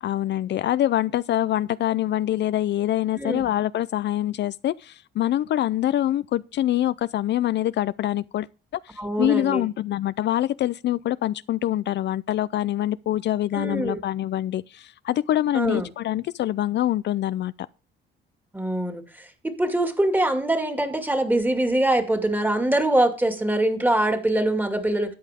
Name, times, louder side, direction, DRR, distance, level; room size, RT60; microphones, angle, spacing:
voice 1, 0.0-8.5 8.8-17.5, left 13 dB, 60° left, 0.4 m, -25 dB
voice 2, 3.1-3.5 9.0-9.6 13.5-14.0 15.5-15.9 18.5-25.1, right 1 dB, 10° right, 2.2 m, -23 dB
13.0 x 8.8 x 3.6 m
cardioid pair, 90°, 20 cm